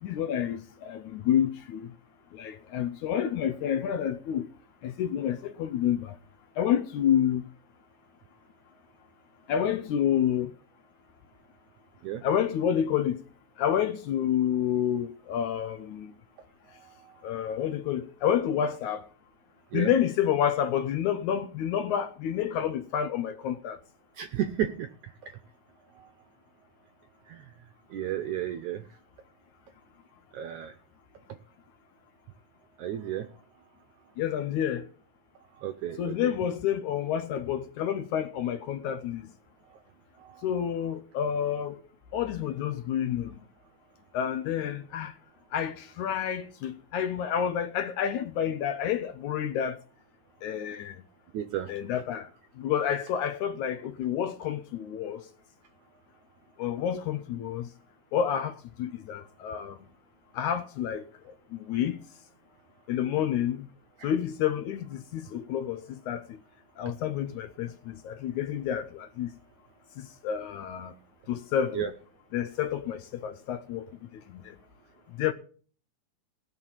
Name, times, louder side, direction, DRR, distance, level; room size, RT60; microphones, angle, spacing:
voice 1, 0.0-1.9 2.3-4.5 4.8-6.2 6.6-7.5 9.5-10.5 12.2-13.2 13.6-16.1 17.2-19.1 19.7-23.8 34.2-34.9 36.0-39.2 40.4-41.8 42.1-43.4 44.1-45.1 45.5-49.8 50.4-51.0 51.7-52.3 52.6-55.3 56.6-57.7 58.1-59.8 60.3-61.1 61.7-62.0 62.9-63.7 64.0-66.3 66.8-69.3 70.0-70.9 71.3-71.9 72.3-73.9 74.1-74.6 75.2-75.3, left 9 dB, 75° left, 1.9 m, -29 dB
voice 2, 24.2-24.9 25.2-25.4 27.3-27.5 27.9-28.8 30.3-30.7 32.8-33.3 35.6-36.3 40.2-40.4 51.3-51.7 64.0-64.1 71.8-71.9, right 10 dB, 75° right, 1.9 m, -33 dB
18.5 x 6.6 x 7.3 m
omnidirectional pair, 4.1 m